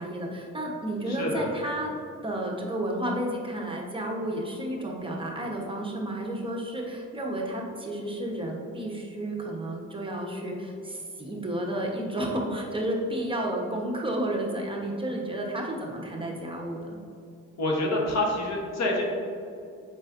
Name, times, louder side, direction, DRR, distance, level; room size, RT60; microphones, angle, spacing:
voice 1, 0.0-1.9 2.2-17.0, right 1 dB, 15° right, -1 dB, 1.0 m, -31 dB
voice 2, 1.1-1.5 17.6-19.0, left 1 dB, 65° left, -1 dB, 1.4 m, -27 dB
7.2 x 5.2 x 2.5 m, 2.5 s
cardioid pair, 90°, 30 cm